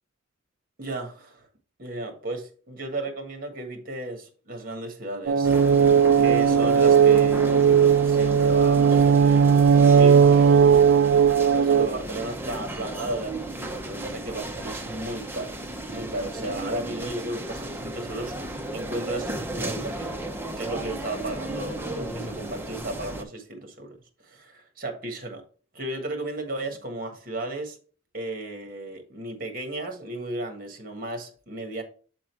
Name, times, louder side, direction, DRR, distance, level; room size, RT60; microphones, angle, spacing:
voice 1, 0.8-1.5 1.8-5.5 6.2-10.9 11.5-15.5 15.9-18.4 18.7-20.2 20.6-24.0 24.2-25.4 25.7-27.8 28.1-31.8, right 1 dB, 45° right, 1.4 m, -34 dB
sound 1, 5.3-11.9, right 7 dB, 70° right, 0.4 m, -17 dB
sound 2, 5.4-23.2, right 1 dB, 10° right, 0.6 m, -34 dB
7.5 x 3.8 x 4.5 m
head